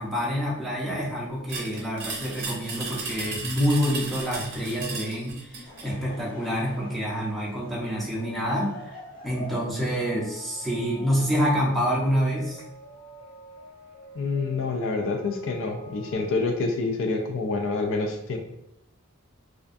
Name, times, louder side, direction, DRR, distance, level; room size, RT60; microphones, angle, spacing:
voice 1, 0.0-5.5 5.8-12.6, equal, ahead, -7 dB, 0.5 m, -27 dB
sound 1, 1.5-5.9, right 4 dB, 50° right, 0.6 m, -35 dB
Laughter / Crowd, 5.4-11.9, equal, 40° left, 0.8 m, -45 dB
sound 2, 9.8-16.2, equal, 80° left, 1.1 m, -46 dB
voice 2, 14.1-18.4, left 3 dB, 60° left, 3 dB, 0.3 m, -27 dB
2.4 x 2.2 x 2.5 m, 0.82 s
head